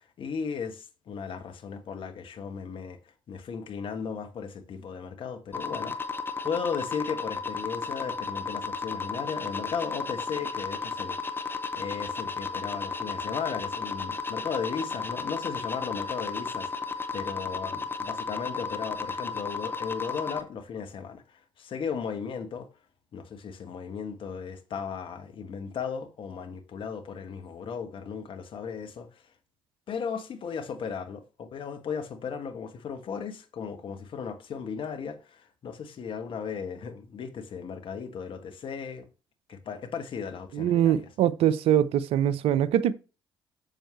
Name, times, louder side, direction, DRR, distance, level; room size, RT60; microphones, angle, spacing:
voice 1, 0.0-3.0 3.3-6.0 6.4-11.2 11.7-16.7 17.1-22.7 23.1-29.2 29.9-39.1 39.5-40.9, left 6 dB, 50° left, 1.4 m, -36 dB
sound 1, 5.5-20.4, left 4 dB, 20° left, 1.1 m, -34 dB
voice 2, 40.5-42.9, right 10 dB, 60° right, 0.6 m, -23 dB
7.7 x 7.4 x 3.2 m
figure-of-eight pair, 45°, 11 cm